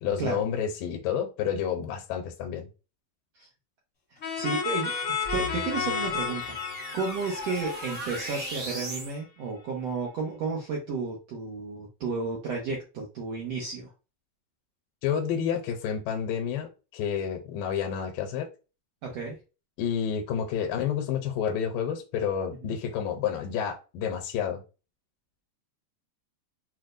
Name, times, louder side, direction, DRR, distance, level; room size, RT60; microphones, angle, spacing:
voice 1, 0.0-2.7 15.0-18.5 19.8-24.6, left 8 dB, 80° left, 2.3 m, -30 dB
sound 1, 4.2-8.8, left 6 dB, 55° left, 0.8 m, -32 dB
voice 2, 4.3-4.9 5.3-13.9 19.0-19.4 22.6-22.7, right 4 dB, 85° right, 1.4 m, -32 dB
sound 2, 5.2-9.2, right 1 dB, 65° right, 1.0 m, -38 dB
6.3 x 2.1 x 2.5 m
omnidirectional pair, 4.2 m